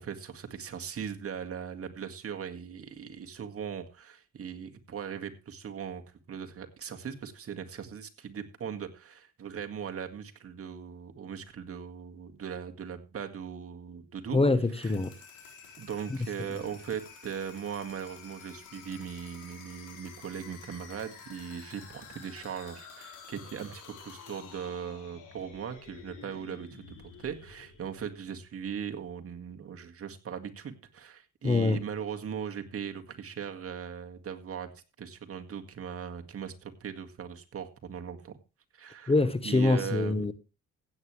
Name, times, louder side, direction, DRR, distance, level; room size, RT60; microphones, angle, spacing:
voice 1, 0.0-6.0 6.3-14.4 14.8-14.9 15.8-34.7 35.0-38.4 38.7-39.1 39.4-40.1, right 7 dB, 50° right, 1.9 m, -39 dB
voice 2, 14.3-15.1 31.4-31.8 39.1-40.3, left 3 dB, 20° left, 1.0 m, -24 dB
sound 1, 14.7-28.5, left 6 dB, 90° left, 4.6 m, -50 dB
16.0 x 8.9 x 3.2 m
cardioid pair, 90°, 30 cm